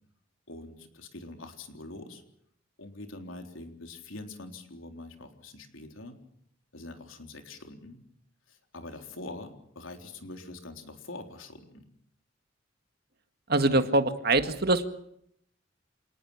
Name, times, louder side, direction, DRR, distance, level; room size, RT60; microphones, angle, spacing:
voice 1, 0.5-2.2 2.8-6.2 6.7-8.0 8.5-11.8 13.6-13.8, left 2 dB, 85° left, 5 dB, 3.7 m, -44 dB
voice 2, 13.5-14.9, right 2 dB, 55° right, 8 dB, 1.9 m, -24 dB
28.0 x 18.5 x 7.2 m, 0.71 s
head